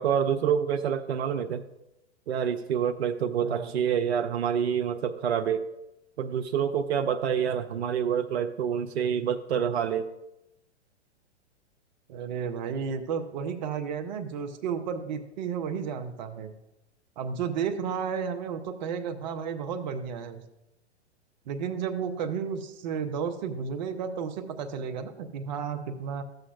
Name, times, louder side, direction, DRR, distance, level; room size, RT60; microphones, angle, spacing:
voice 1, 0.0-1.6 2.3-5.6 6.2-10.1, right 8 dB, 70° right, 9 dB, 0.5 m, -27 dB
voice 2, 3.4-3.7 12.1-16.5 17.2-20.4 21.5-26.2, right 6 dB, 40° right, 8 dB, 0.7 m, -32 dB
12.5 x 7.8 x 2.4 m, 0.89 s
figure-of-eight pair, 110°, 34 cm